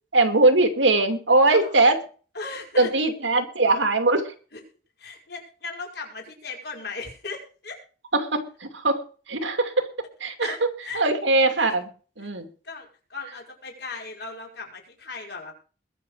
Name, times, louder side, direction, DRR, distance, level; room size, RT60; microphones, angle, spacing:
voice 1, 0.1-2.0 2.8-4.3 8.1-9.0 9.3-9.9 10.2-10.7 10.9-11.9 12.2-12.5, right 2 dB, 80° right, 7 dB, 2.6 m, -21 dB
voice 2, 1.5-1.9 2.3-2.9 4.5-4.6 5.0-7.8 10.4-11.0 11.6-11.8 12.6-15.5, left 4 dB, 55° left, 0 dB, 5.3 m, -37 dB
21.5 x 7.3 x 4.8 m, 0.39 s
head